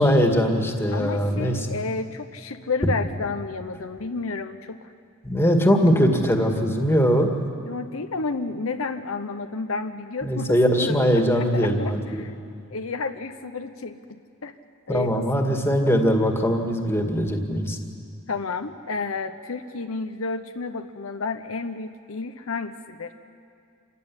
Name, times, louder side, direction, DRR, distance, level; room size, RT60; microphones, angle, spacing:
voice 1, 0.0-1.8 5.2-7.3 10.2-12.2 14.9-17.8, equal, 10° left, 3 dB, 2.1 m, -21 dB
voice 2, 0.9-4.9 7.7-12.3 12.7-14.5 14.9-15.3 18.3-23.1, left 3 dB, 75° left, 7 dB, 0.9 m, -31 dB
27.0 x 15.5 x 9.9 m, 2.4 s
head